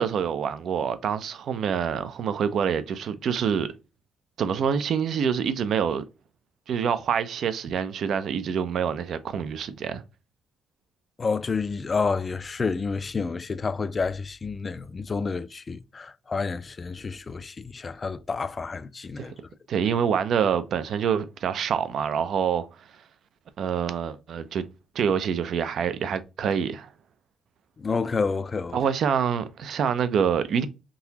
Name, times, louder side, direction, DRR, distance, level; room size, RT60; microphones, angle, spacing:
voice 1, 0.0-3.7 4.4-6.0 6.7-10.0 19.2-19.3 19.7-22.7 23.6-24.6 24.9-26.9 28.7-30.7, right 7 dB, 65° right, 0.5 m, -26 dB
voice 2, 11.2-19.3 27.8-28.8, left 4 dB, 35° left, 0.4 m, -29 dB
3.8 x 2.8 x 2.8 m
cardioid pair, 90°, 0 cm